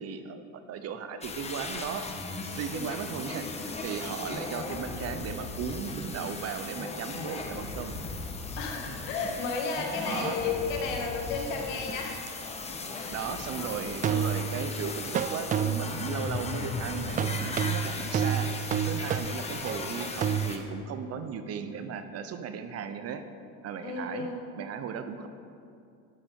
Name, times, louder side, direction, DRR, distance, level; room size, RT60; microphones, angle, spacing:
voice 1, 0.0-2.1 2.5-7.9 10.0-10.4 13.1-23.2 23.6-24.3 24.6-25.3, right 6 dB, 40° right, 9 dB, 0.8 m, -36 dB
sound 1, 1.2-20.6, left 3 dB, 15° left, 1.1 m, -37 dB
voice 2, 8.6-12.1 12.9-13.2 19.2-19.9 23.8-24.4, left 4 dB, 90° left, 0 dB, 2.2 m, -33 dB
sound 2, 12.3-12.4 14.0-14.7 15.1-16.1 17.2-20.5, right 8 dB, 25° right, 0.3 m, -29 dB
12.5 x 10.0 x 3.7 m, 2.5 s
supercardioid pair, 110°, 36 cm